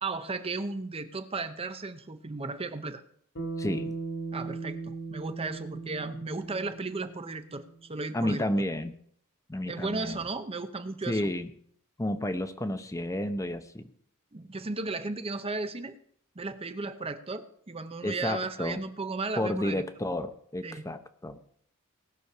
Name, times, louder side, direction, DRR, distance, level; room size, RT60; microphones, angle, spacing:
voice 1, 0.0-3.0 4.3-7.6 7.9-8.5 9.7-11.2 14.3-16.0 16.4-19.8 20.6-20.8, right 3 dB, 25° right, 10 dB, 0.7 m, -35 dB
Bass guitar, 3.4-7.8, right 3 dB, 55° left, 2.1 m, -38 dB
voice 2, 3.6-3.9 8.1-9.0 9.5-10.2 11.1-11.5 12.0-13.9 18.0-18.8 19.4-21.4, left 1 dB, 15° left, 9 dB, 0.7 m, -31 dB
18.5 x 6.4 x 5.6 m, 0.62 s
head